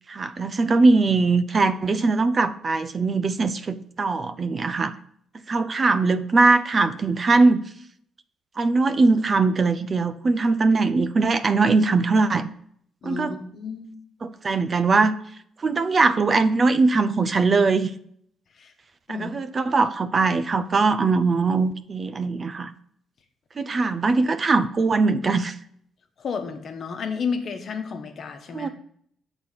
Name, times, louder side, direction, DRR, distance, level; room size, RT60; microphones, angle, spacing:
voice 1, 0.1-4.9 5.5-7.6 8.6-12.5 13.0-13.3 14.2-15.1 15.6-17.9 19.1-22.7 23.6-25.6 28.5-28.7, right 3 dB, 40° right, 11 dB, 0.5 m, -21 dB
voice 2, 13.0-13.9 18.5-18.7 19.1-19.3 26.2-28.7, left 5 dB, 55° left, 6 dB, 1.1 m, -31 dB
7.1 x 4.0 x 5.7 m, 0.66 s
supercardioid pair, 75°, 0 cm